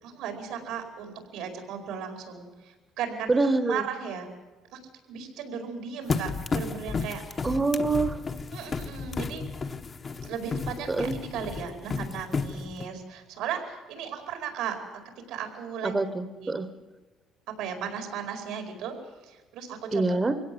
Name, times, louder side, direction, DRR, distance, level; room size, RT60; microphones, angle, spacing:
voice 1, 0.0-4.3 4.7-4.8 5.1-7.2 8.5-9.4 10.2-14.8 15.3-15.9 16.3-16.5 17.6-19.0 19.2-20.2, right 7 dB, 90° right, 4 dB, 4.8 m, -36 dB
voice 2, 3.3-3.8 7.4-8.2 10.9-11.1 15.8-16.7 19.9-20.3, right 3 dB, 15° right, 10 dB, 1.1 m, -25 dB
sound 1, 6.1-12.9, left 4 dB, 25° left, 1.0 m, -33 dB
24.0 x 17.0 x 7.9 m, 1.3 s
cardioid pair, 155°, 0 cm